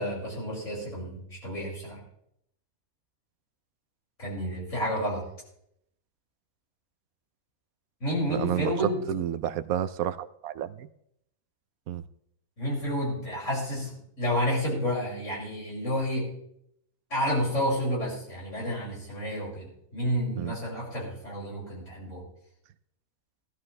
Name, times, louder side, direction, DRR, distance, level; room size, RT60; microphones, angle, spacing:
voice 1, 0.0-2.0 4.2-5.2 8.0-9.0 12.6-16.3 17.1-19.7 19.9-22.2, equal, 60° left, -4 dB, 6.2 m, -30 dB
voice 2, 8.3-8.7 9.1-10.9 11.9-12.0 20.4-20.5, right 11 dB, 80° right, 13 dB, 1.1 m, -31 dB
18.0 x 13.0 x 3.3 m, 0.74 s
omnidirectional pair, 1.5 m